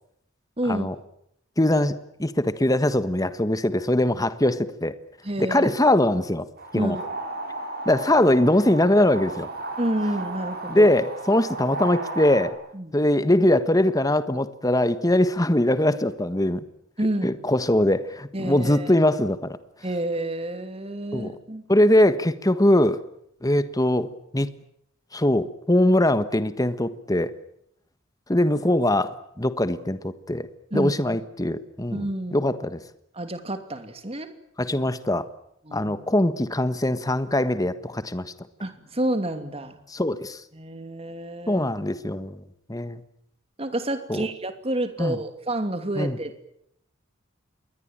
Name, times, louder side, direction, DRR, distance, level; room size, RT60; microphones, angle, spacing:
voice 1, 0.6-0.9 5.2-5.7 6.7-7.1 9.8-10.9 12.7-13.0 17.0-17.4 18.3-18.9 19.8-21.6 30.7-30.9 31.9-32.5 33.2-34.3 35.6-35.9 38.6-39.8 40.5-41.6 43.6-46.5, right 1 dB, 30° right, 9 dB, 2.8 m, -29 dB
voice 2, 1.6-4.9 5.4-6.4 6.7-7.0 7.8-9.5 10.7-12.5 12.9-16.6 17.2-19.6 21.1-21.3 21.7-23.0 23.4-24.5 25.1-27.3 28.3-30.5 30.7-32.1 32.3-32.8 34.6-35.2 35.7-38.3 39.9-40.4 41.5-42.4 42.7-43.0 44.1-44.2 45.0-45.2 45.9-46.2, left 1 dB, 20° left, 12 dB, 1.4 m, -22 dB
sound 1, 6.6-12.5, right 2 dB, 50° right, 6.8 m, -34 dB
27.5 x 22.0 x 9.0 m, 0.75 s
head